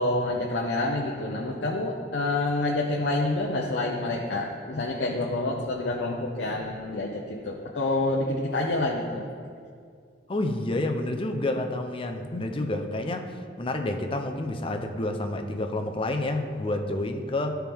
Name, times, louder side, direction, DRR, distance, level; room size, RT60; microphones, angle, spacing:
voice 1, 0.0-9.2, left 2 dB, 70° left, -2 dB, 0.7 m, -28 dB
voice 2, 10.3-13.3 13.6-17.5, left 2 dB, 30° left, 5 dB, 0.5 m, -29 dB
12.5 x 4.5 x 3.5 m, 2.2 s
head